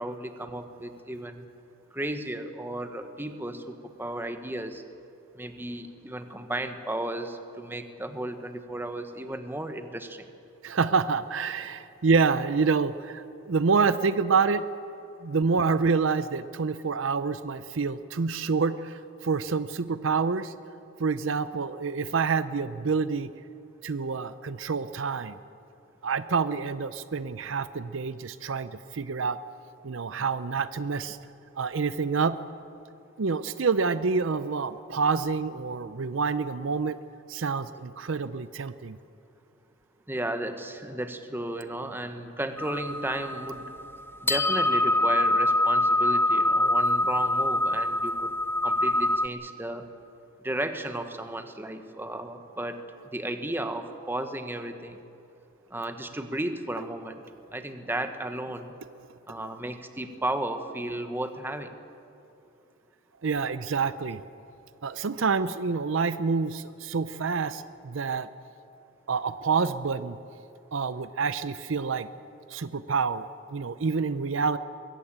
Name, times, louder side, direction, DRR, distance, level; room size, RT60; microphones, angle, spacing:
voice 1, 0.0-1.5 1.9-4.8 5.3-10.3 40.1-43.7 44.2-48.3 48.6-49.8 50.4-52.8 53.1-55.0 55.7-57.2 57.5-58.7 59.3-61.7, right 1 dB, 10° right, 8 dB, 1.1 m, -34 dB
voice 2, 10.6-14.6 15.2-20.5 21.0-23.3 23.8-25.4 26.0-29.4 29.8-31.2 31.6-32.4 33.2-37.0 37.3-39.0 59.4-59.5 63.2-64.2 64.8-68.3 69.1-70.2 70.7-72.1 72.5-74.6, right 5 dB, 65° right, 14 dB, 0.6 m, -27 dB
sound 1, 42.6-49.3, left 1 dB, 10° left, 0.6 m, -25 dB
22.0 x 15.5 x 8.7 m, 2.7 s
head